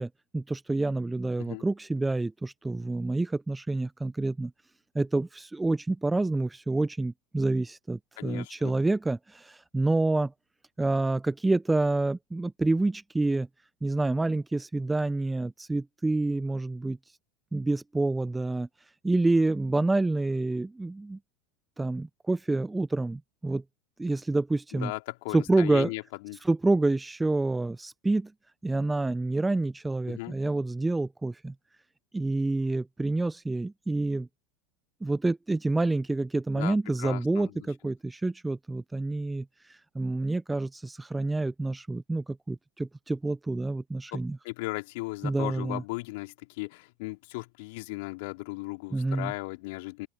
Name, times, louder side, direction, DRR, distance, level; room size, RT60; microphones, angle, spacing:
voice 1, 0.0-4.5 4.9-10.3 10.8-13.5 13.8-17.0 17.5-18.7 19.0-21.2 21.8-23.6 24.0-24.9 25.3-25.9 26.4-28.3 28.6-31.5 32.1-34.3 35.0-44.4 45.2-45.8 48.9-49.3, right 2 dB, 10° right, 0.9 m, -28 dB
voice 2, 8.2-8.7 24.7-26.4 30.1-30.3 36.5-37.7 44.1-50.1, left 25 dB, 60° left, 4.5 m, -37 dB
open air
figure-of-eight pair, 85°, 0 cm